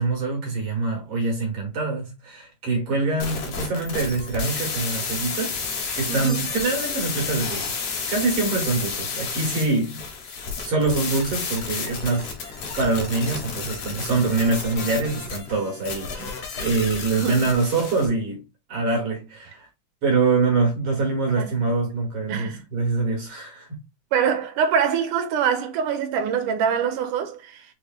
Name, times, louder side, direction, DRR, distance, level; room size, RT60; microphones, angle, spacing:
voice 1, 0.0-5.6 6.0-7.8 8.1-10.0 10.6-18.4 18.7-19.7 20.0-23.7, right 3 dB, 55° right, 2.0 m, -24 dB
sound 1, 3.2-18.1, left 5 dB, 65° left, 2.0 m, -31 dB
voice 2, 6.1-6.4 17.2-17.3 21.4-21.5 22.3-22.6 24.1-27.7, right 7 dB, 80° right, 2.2 m, -24 dB
6.0 x 3.1 x 2.3 m
omnidirectional pair, 3.6 m